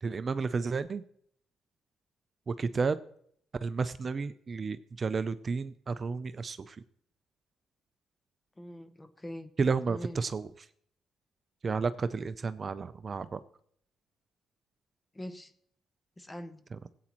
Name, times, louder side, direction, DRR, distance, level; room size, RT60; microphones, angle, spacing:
voice 1, 0.0-1.0 2.5-3.0 3.6-6.8 9.6-10.5 11.6-13.4 16.7-16.8, right 4 dB, 40° right, 13 dB, 0.4 m, -32 dB
voice 2, 8.6-9.5 9.9-10.2 15.1-15.5 16.2-16.6, equal, 15° left, 12 dB, 0.8 m, -43 dB
16.5 x 8.5 x 3.0 m, 0.65 s
cardioid pair, 90°, 0 cm